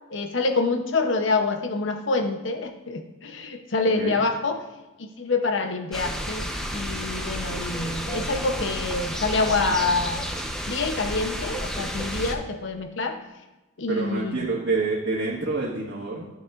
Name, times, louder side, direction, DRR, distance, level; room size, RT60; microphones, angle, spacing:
voice 1, 0.1-4.6 5.0-10.3 10.7-13.2 13.8-14.5, left 3 dB, 65° left, 6 dB, 0.8 m, -26 dB
sound 1, 5.9-12.4, equal, 5° left, 0.7 m, -31 dB
voice 2, 13.9-16.3, right 3 dB, 75° right, -5 dB, 1.5 m, -27 dB
13.0 x 6.8 x 2.5 m, 1.1 s
head